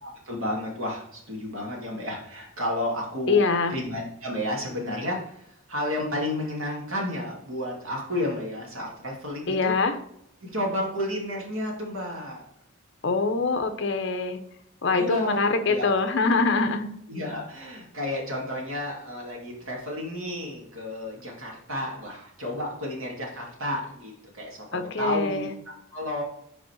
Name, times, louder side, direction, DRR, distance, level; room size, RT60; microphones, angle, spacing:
voice 1, 0.0-3.4 3.7-5.2 5.7-9.7 10.4-12.4 15.0-15.4 15.6-15.9 17.1-25.5 25.9-26.2, left 1 dB, 85° right, -1 dB, 2.2 m, -31 dB
voice 2, 3.3-3.7 9.5-9.9 13.0-14.4 14.8-16.9 24.7-25.5, left 4 dB, 55° left, 7 dB, 0.7 m, -24 dB
5.1 x 4.8 x 4.5 m, 0.74 s
head